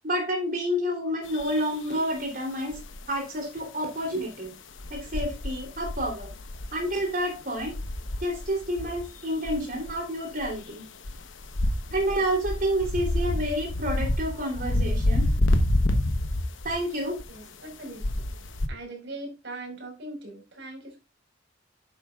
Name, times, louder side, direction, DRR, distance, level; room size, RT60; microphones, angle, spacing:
voice 1, 0.0-2.8 3.1-4.5 4.9-6.3 6.7-7.7 8.2-10.8 11.9-15.3 16.6-17.2, equal, 45° right, 2 dB, 3.2 m, -29 dB
sound 1, 1.3-2.0 2.7-3.0 4.8-7.1 7.4-9.2 9.5-9.9 10.3-10.6 11.0-16.8 17.2-17.4 18.0-18.7, left 1 dB, 80° left, 1.0 m, -28 dB
voice 2, 17.3-18.2 18.7-21.0, right 2 dB, 65° right, 2 dB, 4.7 m, -40 dB
11.0 x 8.5 x 2.4 m, 0.28 s
head